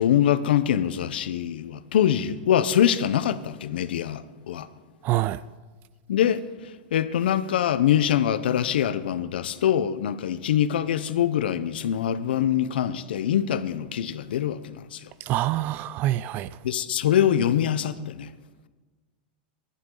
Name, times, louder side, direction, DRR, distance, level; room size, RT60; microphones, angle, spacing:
voice 1, 0.0-4.7 6.1-6.4 6.9-15.0 16.6-18.3, left 10 dB, 85° left, 0.8 m, -24 dB
voice 2, 5.0-5.4 15.3-16.5, right 15 dB, 35° right, 0.3 m, -25 dB
23.5 x 11.5 x 3.9 m
supercardioid pair, 145°, 5 cm